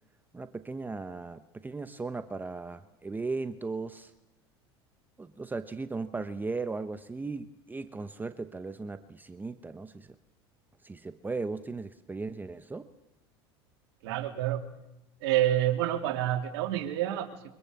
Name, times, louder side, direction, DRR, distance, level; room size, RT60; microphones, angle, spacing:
voice 1, 0.3-4.1 5.2-10.1 10.8-12.9, right 3 dB, 15° right, 11 dB, 1.0 m, -37 dB
voice 2, 14.0-14.6 15.2-17.5, right 13 dB, 70° right, 3 dB, 3.4 m, -28 dB
24.5 x 22.5 x 6.8 m, 0.88 s
hypercardioid pair, 95°, 13 cm